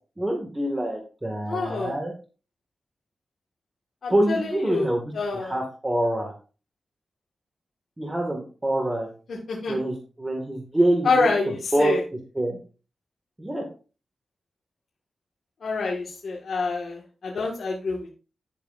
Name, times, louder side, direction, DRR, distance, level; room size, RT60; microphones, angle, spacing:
voice 1, 0.2-2.1 4.1-5.0 5.3-6.3 8.0-9.1 9.7-11.3 11.7-12.0 12.3-12.6 13.4-13.6, right 1 dB, 20° right, 1 dB, 2.3 m, -25 dB
voice 2, 1.5-1.9 4.0-4.9 5.1-5.6 9.3-9.8 11.0-12.0 15.6-18.1, left 3 dB, 70° left, -3 dB, 2.1 m, -27 dB
12.0 x 6.8 x 2.7 m, 0.35 s
cardioid pair, 45°, 0 cm